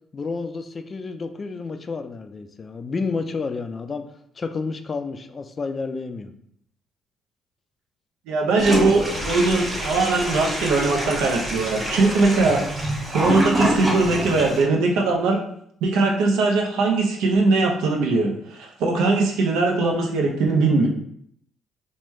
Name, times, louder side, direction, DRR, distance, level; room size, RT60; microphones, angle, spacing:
voice 1, 0.1-4.0 4.4-6.3, left 4 dB, 35° left, 8 dB, 0.3 m, -30 dB
voice 2, 8.3-12.6 13.1-15.4 15.8-20.9, right 3 dB, 85° right, 0 dB, 0.6 m, -20 dB
Toilet flush, 8.6-14.6, equal, 25° right, 1.4 m, -26 dB
3.1 x 2.2 x 3.1 m, 0.69 s
supercardioid pair, 75°, 0 cm